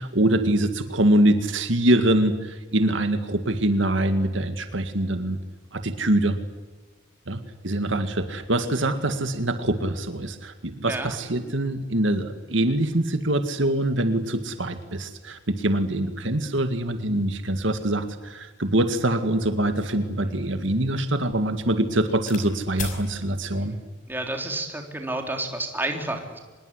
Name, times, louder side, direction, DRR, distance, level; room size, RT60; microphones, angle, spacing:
voice 1, 0.0-5.4 5.7-6.4 7.3-23.8, right 1 dB, 65° right, 8 dB, 2.0 m, -24 dB
sound 1, 19.6-22.5 22.8-23.0 23.9-24.2, left 4 dB, 40° left, 5.8 m, -40 dB
voice 2, 24.1-26.4, right 2 dB, 10° right, 3 dB, 3.7 m, -30 dB
25.5 x 21.5 x 9.7 m, 1.3 s
head